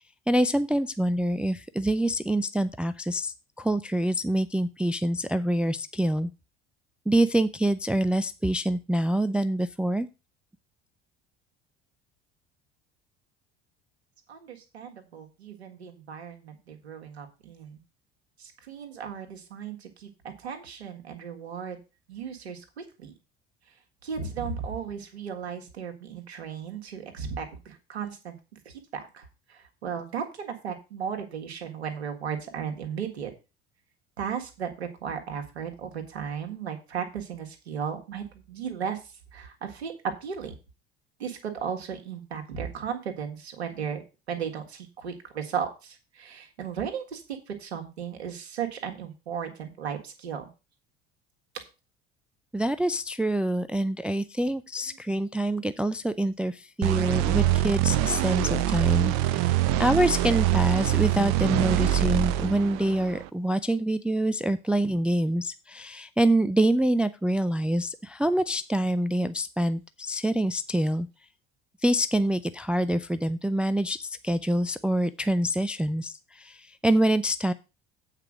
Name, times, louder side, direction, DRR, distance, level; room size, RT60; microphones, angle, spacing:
voice 1, 0.3-6.3 7.1-10.1 52.5-71.1 71.8-77.5, right 1 dB, 5° right, 12 dB, 0.4 m, -26 dB
voice 2, 14.3-17.8 18.4-20.1 20.4-21.8 22.1-23.1 24.0-28.3 28.6-29.2 29.5-33.3 34.2-39.0 39.3-39.9 40.2-40.5 41.2-44.0 44.3-47.2 47.5-50.5 54.9-55.0, right 7 dB, 85° right, 4 dB, 1.6 m, -35 dB
sound 1, 56.8-63.3, right 14 dB, 55° right, 0.7 m, -24 dB
8.3 x 4.9 x 6.2 m, 0.29 s
figure-of-eight pair, 65°, 32 cm